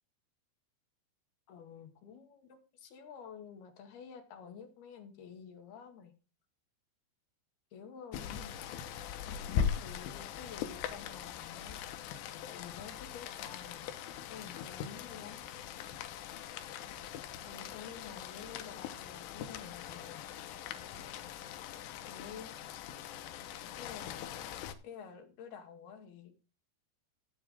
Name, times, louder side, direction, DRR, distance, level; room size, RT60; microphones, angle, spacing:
voice 1, 1.5-6.1 7.7-8.6 9.8-11.8 12.3-13.9 14.3-15.4 17.4-20.3 22.1-22.6 23.8-24.3 24.8-26.3, left 7 dB, 60° left, 7 dB, 3.7 m, -50 dB
Rain, 8.1-24.7, left 8 dB, 90° left, 3.6 m, -41 dB
15.0 x 8.3 x 3.6 m, 0.33 s
omnidirectional pair, 5.4 m